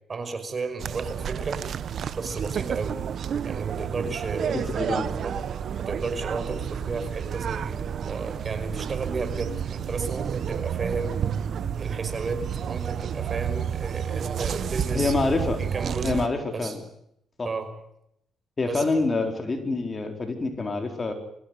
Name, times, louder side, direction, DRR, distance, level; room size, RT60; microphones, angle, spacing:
voice 1, 0.1-1.6 2.1-3.0 3.4-4.6 5.2-5.3 5.8-11.2 11.8-15.1 15.6-16.1 16.5-16.8 17.4-17.7 18.7-19.1, right 4 dB, 40° right, 8 dB, 5.5 m, -33 dB
sound 1, 0.8-16.3, right 8 dB, 60° right, 1.1 m, -30 dB
voice 2, 4.5-5.0 14.9-15.6 16.0-16.8 17.4-17.5 18.6-21.1, left 3 dB, 30° left, 5 dB, 4.4 m, -26 dB
25.0 x 16.0 x 9.6 m, 0.76 s
cardioid pair, 90°, 0 cm